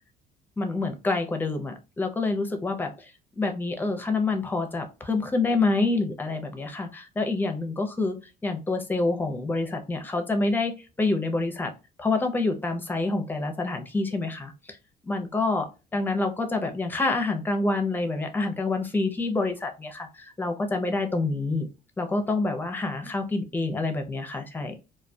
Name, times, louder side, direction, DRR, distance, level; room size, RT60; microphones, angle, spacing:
voice 1, 0.6-3.1 3.4-8.2 8.4-11.7 12.0-14.8 15.1-21.7 22.0-24.7, left 3 dB, 10° left, 6 dB, 0.5 m, -27 dB
2.2 x 2.1 x 2.6 m, 0.29 s
cardioid pair, 110°, 17 cm